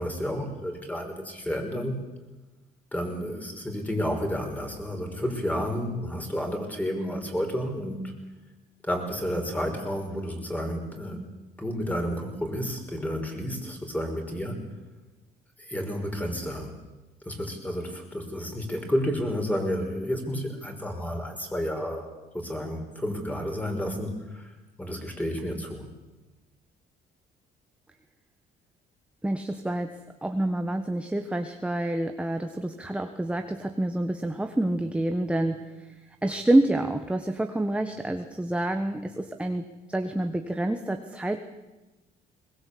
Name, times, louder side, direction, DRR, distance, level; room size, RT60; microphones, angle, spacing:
voice 1, 0.0-2.0 2.9-8.1 8.8-11.3 11.6-14.6 15.6-16.8 17.3-22.1 22.3-25.9, equal, 10° left, 3 dB, 5.5 m, -31 dB
voice 2, 29.2-35.9 36.2-41.4, right 1 dB, 5° right, 6 dB, 1.3 m, -28 dB
22.0 x 20.5 x 8.5 m, 1.1 s
cardioid pair, 110°, 17 cm